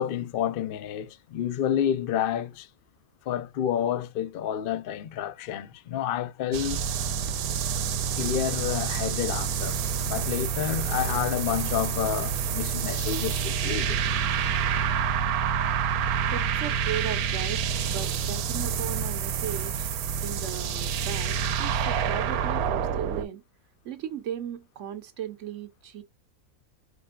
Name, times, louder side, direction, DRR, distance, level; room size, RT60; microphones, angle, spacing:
voice 1, 0.0-2.7 3.3-6.8 8.1-14.0, left 10 dB, 70° left, 0.5 m, -29 dB
sound 1, 6.5-23.3, right 7 dB, 90° right, 1.1 m, -28 dB
voice 2, 16.3-17.6 17.9-19.9 20.2-23.4 23.8-26.0, right 9 dB, 65° right, 0.9 m, -37 dB
4.2 x 3.2 x 2.2 m
omnidirectional pair, 1.5 m